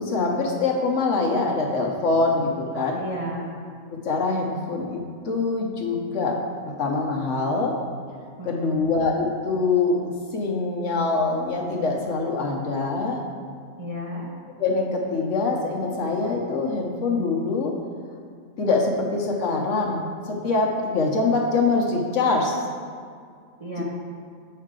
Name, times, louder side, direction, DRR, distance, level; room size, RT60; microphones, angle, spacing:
voice 1, 0.0-3.0 3.9-6.4 6.6-7.7 8.4-13.2 14.6-17.7 18.6-20.0 20.3-22.6 23.8-23.9, left 3 dB, 60° left, -1 dB, 1.1 m, -24 dB
voice 2, 3.0-3.5 8.4-8.9 13.8-14.3 23.6-23.8, equal, 30° right, -5 dB, 0.8 m, -33 dB
7.6 x 5.6 x 3.7 m, 2.2 s
omnidirectional pair, 1.5 m